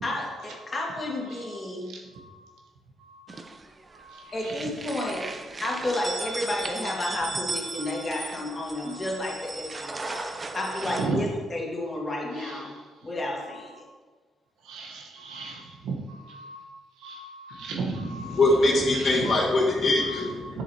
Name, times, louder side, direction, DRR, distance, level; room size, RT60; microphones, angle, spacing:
voice 1, 0.0-1.9 4.3-5.3 5.6-12.7 13.0-13.8, left 1 dB, 30° left, -2 dB, 1.9 m, -31 dB
sound 1, 3.3-4.0 4.3-11.1, right 3 dB, 30° right, 0.7 m, -36 dB
voice 2, 4.0-4.3 7.8-7.9 11.0-11.2 14.7-16.6 17.0-18.4 20.0-20.2 20.5-20.6, right 3 dB, 85° right, 0 dB, 1.1 m, -34 dB
voice 3, 18.2-20.6, left 2 dB, 50° left, -2 dB, 1.9 m, -22 dB
7.4 x 6.9 x 2.9 m, 1.4 s
cardioid pair, 90°, 0 cm